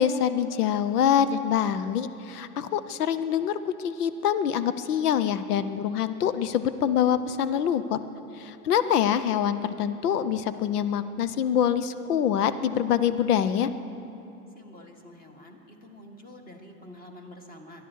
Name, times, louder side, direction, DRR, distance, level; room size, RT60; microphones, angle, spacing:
voice 1, 0.0-8.0 8.4-13.7, left 9 dB, 75° left, 13 dB, 0.9 m, -25 dB
voice 2, 14.6-17.9, left 1 dB, 20° left, 4 dB, 2.0 m, -47 dB
23.0 x 12.0 x 4.7 m, 2.9 s
hypercardioid pair, 110°, 46 cm